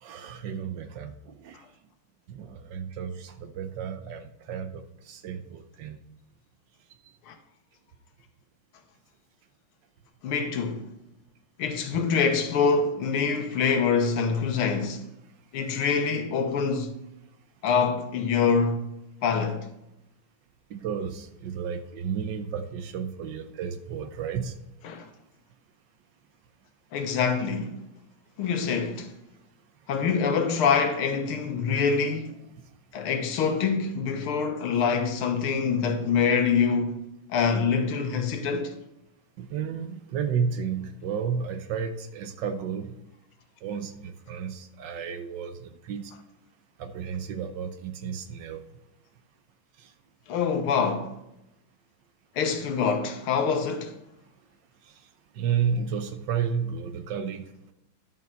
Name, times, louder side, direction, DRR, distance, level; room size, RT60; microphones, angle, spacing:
voice 1, 0.0-1.6 2.3-6.0 11.9-12.0 20.7-24.6 39.4-43.0 43.6-46.1 46.8-48.6 49.8-49.9 55.3-57.7, right 7 dB, 65° right, 1.3 m, -32 dB
voice 2, 10.2-10.9 11.6-15.0 15.5-16.9 17.6-18.9 19.2-19.7 24.8-25.1 26.9-27.8 28.4-29.1 29.9-32.4 32.9-38.7 50.3-51.1 52.4-54.0, left 5 dB, 80° left, 1.9 m, -25 dB
11.0 x 6.7 x 4.4 m
omnidirectional pair, 2.4 m